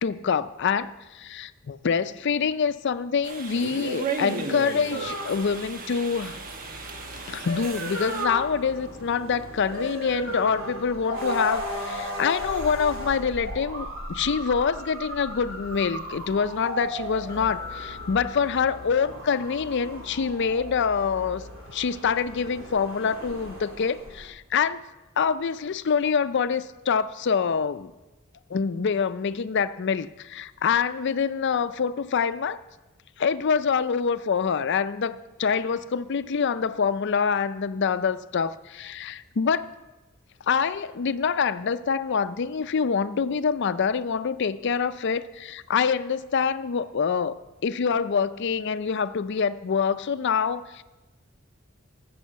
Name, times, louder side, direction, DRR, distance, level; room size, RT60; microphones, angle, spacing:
voice 1, 0.0-6.4 7.3-21.4 21.7-24.8 25.2-27.9 28.5-32.6 33.2-39.7 40.5-47.4 47.6-50.8, left 6 dB, 60° left, 14 dB, 0.5 m, -26 dB
sound 1, 3.2-8.3, right 4 dB, 45° right, 1.1 m, -35 dB
sound 2, 4.9-24.3, equal, 80° right, 2.5 m, -36 dB
Keyboard (musical), 17.3-19.7, left 6 dB, 15° left, 1.6 m, -43 dB
13.5 x 6.2 x 7.4 m, 1.1 s
head